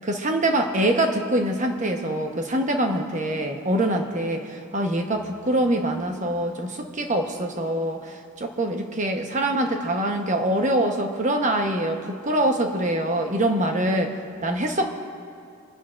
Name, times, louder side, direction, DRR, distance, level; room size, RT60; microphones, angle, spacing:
voice 1, 0.0-14.1 14.4-14.9, right 1 dB, 35° right, 4 dB, 1.0 m, -24 dB
28.0 x 10.5 x 2.5 m, 2.4 s
head